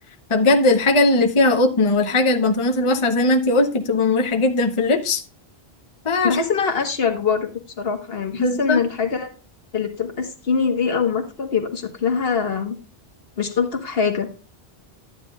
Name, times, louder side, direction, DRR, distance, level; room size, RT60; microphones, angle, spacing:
voice 1, 0.3-5.2 6.0-6.4 8.4-8.8, left 2 dB, 30° left, 0.8 m, -19 dB
voice 2, 6.2-7.5 7.8-9.3 9.7-12.8 13.4-14.3, left 5 dB, 65° left, 1.5 m, -23 dB
12.0 x 9.8 x 2.3 m
omnidirectional pair, 1.1 m